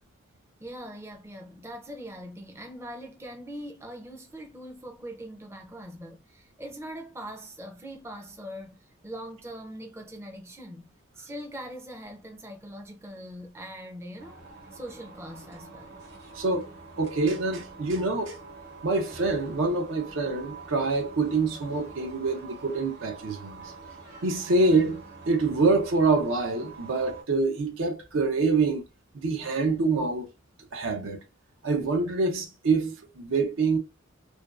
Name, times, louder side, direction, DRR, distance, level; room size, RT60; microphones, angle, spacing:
voice 1, 0.6-10.9 11.2-14.4 14.7-16.0, equal, 15° right, 0.4 m, -42 dB
sound 1, 14.2-27.2, right 4 dB, 55° right, 0.9 m, -46 dB
voice 2, 16.3-16.7 17.0-18.4 18.8-23.6 24.2-28.8 29.1-30.3 30.7-31.2 31.6-33.8, right 3 dB, 75° right, 0.5 m, -26 dB
2.5 x 2.2 x 2.2 m
head